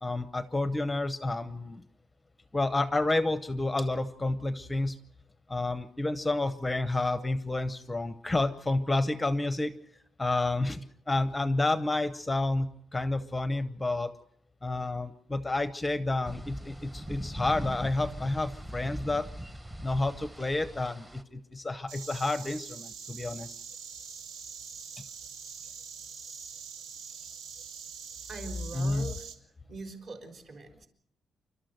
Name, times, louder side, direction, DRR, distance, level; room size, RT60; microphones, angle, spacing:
voice 1, 0.0-1.8 2.5-5.0 5.5-9.7 10.2-14.1 14.6-19.3 19.8-23.5 28.7-29.1, left 2 dB, 10° left, 12 dB, 0.7 m, -30 dB
sound 1, 16.2-21.2, equal, 10° right, 1.1 m, -41 dB
Insect, 21.9-29.3, right 6 dB, 70° right, 2.4 m, -44 dB
voice 2, 28.3-29.3 29.7-30.9, right 3 dB, 45° right, 6 dB, 4.3 m, -42 dB
29.5 x 12.5 x 7.8 m, 0.72 s
cardioid pair, 180°, 0 cm